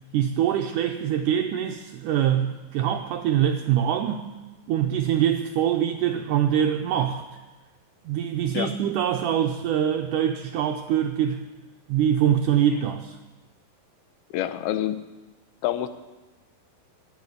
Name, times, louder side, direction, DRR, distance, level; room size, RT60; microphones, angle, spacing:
voice 1, 0.1-4.2 4.7-7.3 8.1-11.5 11.9-13.2, right 10 dB, 80° right, 4 dB, 1.8 m, -24 dB
voice 2, 14.3-15.0 15.6-15.9, left 12 dB, 85° left, 11 dB, 2.7 m, -27 dB
11.5 x 9.6 x 9.7 m, 1.1 s
omnidirectional pair, 4.3 m